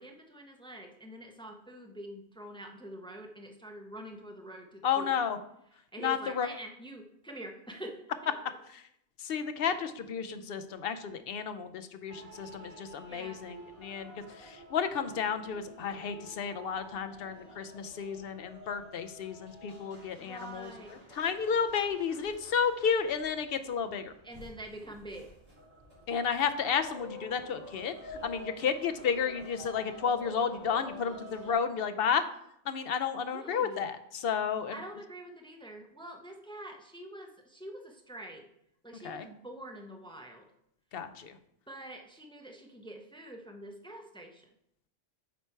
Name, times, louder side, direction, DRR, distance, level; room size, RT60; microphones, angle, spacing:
voice 1, 0.0-5.2 5.9-8.3 13.1-13.4 20.2-21.0 24.2-25.3 33.3-33.9 34.7-38.4 38.8-40.5 41.7-44.5, right 1 dB, 5° left, 2 dB, 0.6 m, -46 dB
voice 2, 4.8-5.4 6.0-6.5 8.7-8.8 9.2-20.7 21.1-24.1 26.1-32.2 32.7-34.7 39.0-39.3 40.9-41.4, left 7 dB, 60° left, 10 dB, 0.7 m, -32 dB
sound 1, 12.1-31.5, equal, 55° right, 3.5 m, -49 dB
8.1 x 4.4 x 4.5 m, 0.76 s
omnidirectional pair, 1.2 m